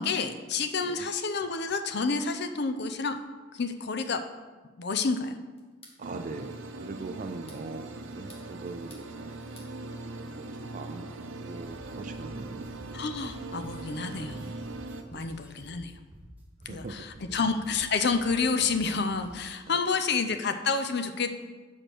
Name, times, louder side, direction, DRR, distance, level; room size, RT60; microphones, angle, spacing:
voice 1, 0.0-3.2 3.5-4.2 4.8-5.4 12.9-14.6 15.1-15.9 16.7-21.5, left 4 dB, 55° left, 8 dB, 0.6 m, -29 dB
sound 1, 5.6-6.0 7.2-7.7 8.1-9.1 9.3-9.7, left 2 dB, 30° left, 1.4 m, -54 dB
voice 2, 6.0-9.4 10.2-12.9 15.1-15.5 16.6-17.4 19.7-19.8, right 3 dB, 40° right, 8 dB, 0.4 m, -42 dB
sound 2, 6.0-15.0, right 2 dB, 85° right, 0.7 m, -40 dB
sound 3, 11.6-19.6, equal, 10° right, 1.5 m, -50 dB
7.5 x 5.1 x 6.0 m, 1.3 s
head